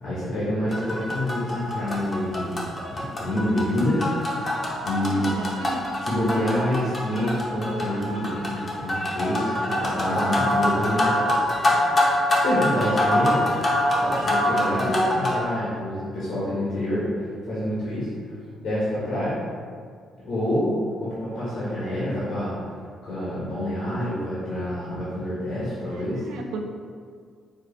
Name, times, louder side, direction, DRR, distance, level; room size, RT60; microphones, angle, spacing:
voice 1, 0.0-4.4 4.8-5.4 6.0-11.3 12.3-13.4 13.9-19.4 20.2-22.5 23.0-26.2, left 1 dB, 75° left, -9 dB, 1.1 m, -27 dB
sound 1, 0.7-15.4, left 1 dB, 35° left, 0.8 m, -25 dB
voice 2, 5.1-5.9 25.9-26.6, right 2 dB, 85° right, 2 dB, 0.4 m, -35 dB
4.4 x 2.5 x 3.2 m, 2.1 s
cardioid pair, 90°, 0 cm